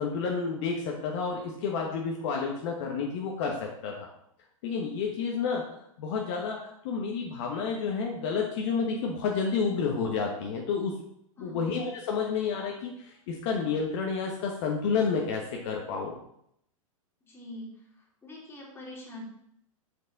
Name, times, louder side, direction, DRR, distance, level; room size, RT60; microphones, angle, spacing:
voice 1, 0.0-4.1 4.6-5.7 6.0-10.9 11.4-16.2, left 5 dB, 50° left, 0 dB, 1.2 m, -30 dB
voice 2, 17.2-17.7 18.2-19.2, left 1 dB, 15° left, -4 dB, 2.7 m, -43 dB
5.9 x 5.5 x 4.1 m, 0.73 s
hypercardioid pair, 110°, 18 cm